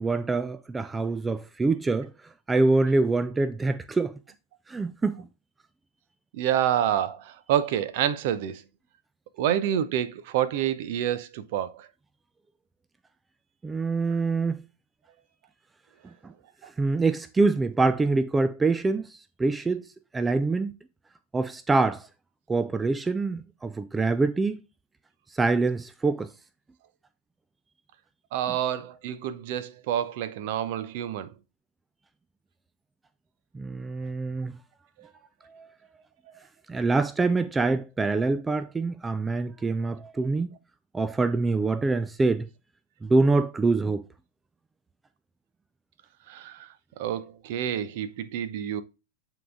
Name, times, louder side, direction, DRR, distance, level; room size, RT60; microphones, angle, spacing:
voice 1, 0.0-2.1 2.5-4.1 4.7-5.3 13.6-14.6 16.8-19.9 20.1-20.7 21.3-22.0 22.5-24.6 25.3-26.3 33.5-34.5 35.5-35.7 36.7-40.5 40.9-42.5 43.0-44.0, right 3 dB, 10° right, 0.4 m, -25 dB
voice 2, 6.3-8.6 9.4-11.9 16.6-16.7 28.3-31.3 35.0-35.1 46.3-48.8, right 10 dB, 50° right, 0.7 m, -28 dB
9.1 x 4.0 x 3.4 m
figure-of-eight pair, 90°, 0 cm